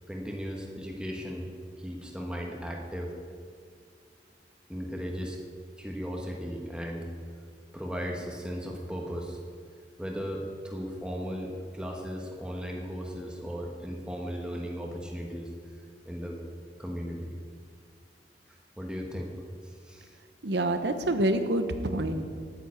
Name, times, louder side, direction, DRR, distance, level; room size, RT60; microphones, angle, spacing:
voice 1, 0.1-1.5 1.8-3.1 4.7-5.4 5.8-7.1 7.7-9.4 10.0-15.5 16.0-16.4 16.8-17.3 18.8-19.3 19.6-20.1, equal, 5° right, 0 dB, 1.3 m, -36 dB
voice 2, 20.4-22.3, right 1 dB, 70° right, 8 dB, 1.0 m, -27 dB
9.3 x 9.0 x 8.4 m, 2.2 s
head